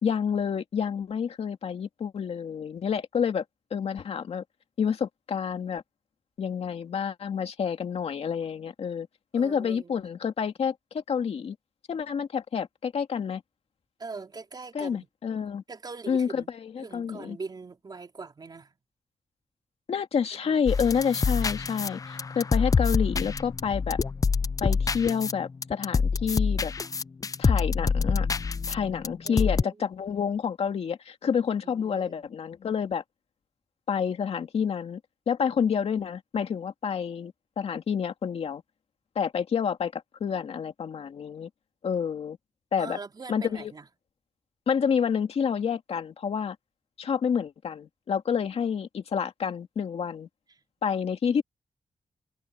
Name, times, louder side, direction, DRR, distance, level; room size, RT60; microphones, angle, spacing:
voice 1, 0.0-3.4 3.7-4.4 4.8-5.8 6.4-9.1 9.3-11.6 11.9-13.4 14.7-15.6 16.1-17.4 19.9-24.0 24.6-26.7 27.4-28.3 28.7-33.0 33.9-35.0 35.3-38.6 39.2-41.5 41.8-42.4 42.7-43.0 43.3-43.7 44.7-46.6 47.0-50.3 50.8-51.4, left 7 dB, 75° left, 2.3 m, -29 dB
voice 2, 9.3-10.0 14.0-15.1 15.7-16.5 16.8-18.7 20.3-21.0 29.2-29.9 31.6-32.2 42.8-43.9 50.5-50.6, right 4 dB, 40° right, 4.5 m, -42 dB
sound 1, 20.7-29.6, left 5 dB, 35° left, 0.5 m, -26 dB
wide cardioid pair, 115°, 10 cm